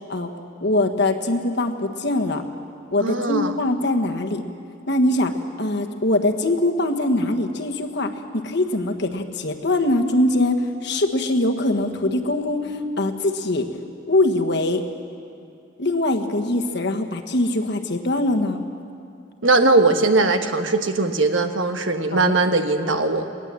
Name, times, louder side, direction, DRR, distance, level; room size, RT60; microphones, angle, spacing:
voice 1, 0.6-2.4 2.9-4.4 4.9-5.3 5.6-13.7 14.1-14.8 15.8-18.6 22.1-22.3, left 1 dB, 60° left, 4 dB, 1.4 m, -22 dB
voice 2, 3.0-3.5 19.4-23.3, right 3 dB, 75° right, 7 dB, 1.3 m, -20 dB
20.0 x 19.0 x 7.6 m, 2.6 s
head